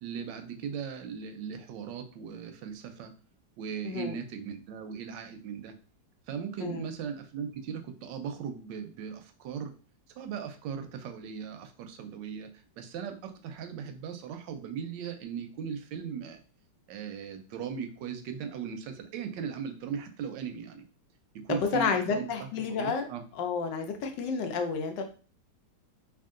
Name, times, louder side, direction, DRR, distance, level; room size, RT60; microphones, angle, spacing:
voice 1, 0.0-3.1 3.6-5.7 6.3-9.7 10.2-12.5 12.8-16.4 16.9-20.9 21.4-23.2, right 7 dB, 85° right, 7 dB, 1.3 m, -38 dB
voice 2, 3.8-4.2 6.6-6.8 21.5-23.1 23.3-25.0, left 5 dB, 85° left, 5 dB, 1.3 m, -30 dB
3.6 x 2.4 x 3.6 m, 0.38 s
omnidirectional pair, 1.9 m